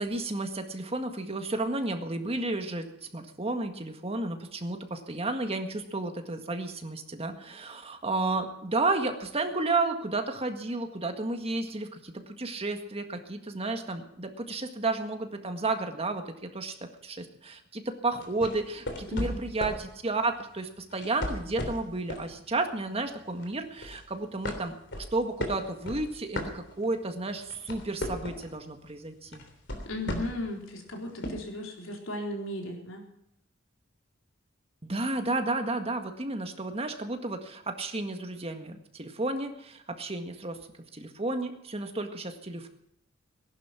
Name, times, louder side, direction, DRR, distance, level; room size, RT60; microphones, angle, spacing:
voice 1, 0.0-29.4 34.8-40.6 40.9-42.7, right 2 dB, 30° right, 6 dB, 1.8 m, -32 dB
sound 1, 18.2-19.9 20.9-22.3 22.7-23.0 23.4-24.0 24.4-27.0 27.4-28.6 29.3-30.5 31.2-31.3, left 1 dB, 65° left, 3.3 m, -35 dB
voice 2, 19.1-19.5 29.8-33.1, left 1 dB, 85° left, 1 dB, 4.0 m, -36 dB
18.5 x 11.5 x 6.1 m, 0.76 s
head